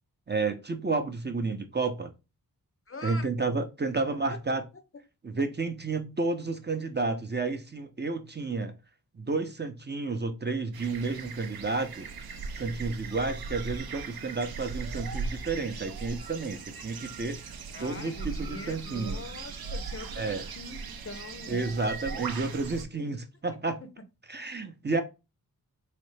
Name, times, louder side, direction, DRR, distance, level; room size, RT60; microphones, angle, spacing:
voice 1, 0.3-2.1 3.0-4.6 5.2-8.7 9.1-12.1 12.6-17.4 17.8-19.2 20.2-20.5 21.5-23.8 24.3-25.0, right 3 dB, 30° right, 0.6 m, -31 dB
voice 2, 2.9-3.3 4.3-4.4 17.7-21.7 22.9-23.0 23.8-23.9, left 2 dB, 40° left, 0.5 m, -43 dB
sound 1, 10.7-22.8, right 4 dB, 80° right, 0.6 m, -39 dB
4.0 x 3.2 x 3.2 m
wide cardioid pair, 125°, 36 cm